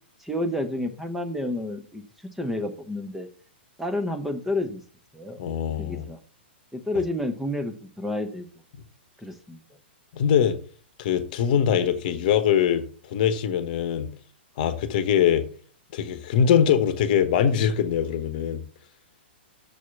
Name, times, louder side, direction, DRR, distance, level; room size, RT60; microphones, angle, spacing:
voice 1, 0.2-3.3 3.8-4.8 5.1-5.4 5.8-6.2 6.7-8.5 9.2-9.6, left 1 dB, 5° right, 0.9 m, -30 dB
voice 2, 5.4-6.1 10.1-10.6 11.0-12.8 13.1-14.1 14.6-15.5 15.9-18.6, left 8 dB, 50° left, 1.0 m, -22 dB
6.9 x 4.7 x 6.7 m
hypercardioid pair, 115°, 6 cm